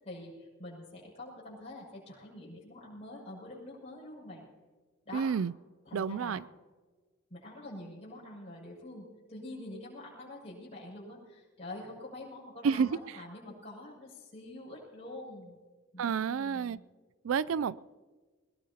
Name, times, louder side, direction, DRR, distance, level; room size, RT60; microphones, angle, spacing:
voice 1, 0.0-4.4 5.0-5.2 5.8-6.4 7.3-15.6 15.9-16.8, left 1 dB, 30° left, 6.4 m, -46 dB
voice 2, 5.1-5.5 5.9-6.4 12.6-12.9 16.0-16.8 17.2-17.8, right 6 dB, 70° right, 0.4 m, -29 dB
21.5 x 21.0 x 2.9 m
head